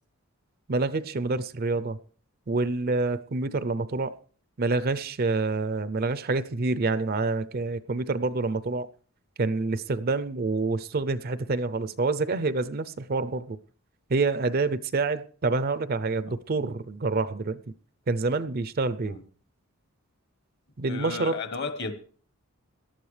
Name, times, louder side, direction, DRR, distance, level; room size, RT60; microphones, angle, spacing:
voice 1, 0.7-2.0 2.5-4.2 4.6-8.9 9.4-13.6 14.1-17.6 18.1-19.2 20.8-21.4, right 3 dB, 45° right, 0.5 m, -27 dB
voice 2, 20.9-21.9, left 4 dB, 50° left, 1.2 m, -33 dB
18.0 x 12.0 x 3.3 m
head